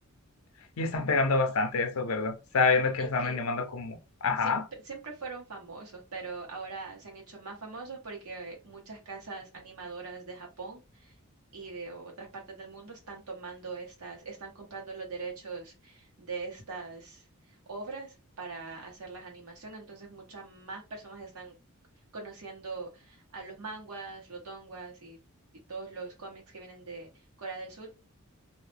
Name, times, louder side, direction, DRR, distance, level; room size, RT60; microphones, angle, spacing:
voice 1, 0.8-4.6, left 4 dB, 70° left, 0.5 m, -27 dB
voice 2, 3.0-3.4 4.4-4.6 4.8-11.2 11.5-21.5 22.1-25.2 25.7-27.9, right 4 dB, 85° right, 1.1 m, -42 dB
2.5 x 2.1 x 3.2 m
head